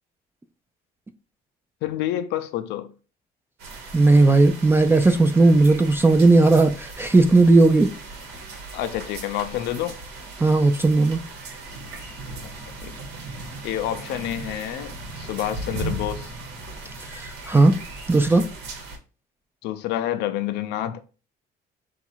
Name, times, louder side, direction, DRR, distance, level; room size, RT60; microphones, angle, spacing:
voice 1, 1.8-2.9 8.7-10.0 12.8-12.9 13.6-16.3 19.6-21.0, left 12 dB, 85° left, 0.5 m, -28 dB
sound 1, 3.6-19.0, right 2 dB, 85° right, 1.1 m, -37 dB
voice 2, 3.9-7.9 10.4-11.2 17.5-17.8 18.1-18.5, right 3 dB, 15° right, 0.3 m, -16 dB
4.0 x 2.4 x 4.4 m
cardioid pair, 110°, 17 cm